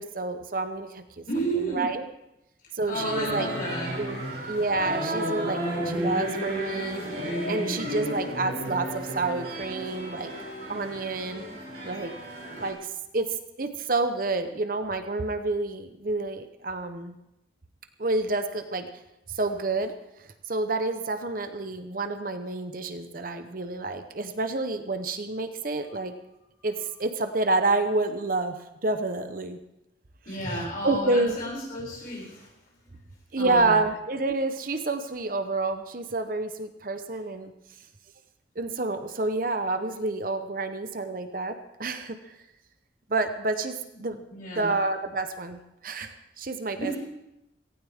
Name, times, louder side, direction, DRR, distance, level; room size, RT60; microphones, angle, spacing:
voice 1, 0.0-1.2 1.6-2.0 2.7-3.5 4.0-10.3 10.7-11.4 11.8-12.1 12.6-13.3 13.6-17.2 18.0-18.9 19.3-19.9 20.5-26.1 26.6-29.6 30.5-31.4 33.3-37.5 38.6-42.4 43.1-44.2 44.5-47.0, right 3 dB, 50° right, 8 dB, 0.9 m, -29 dB
voice 2, 1.2-1.9 2.9-3.9 4.2-4.3 30.2-32.5 33.4-33.7 44.3-44.7 46.8-47.0, right 1 dB, 50° left, -4 dB, 6.8 m, -32 dB
sound 1, 2.9-12.7, equal, 70° right, 7.0 m, -33 dB
17.5 x 16.0 x 3.6 m, 0.87 s
head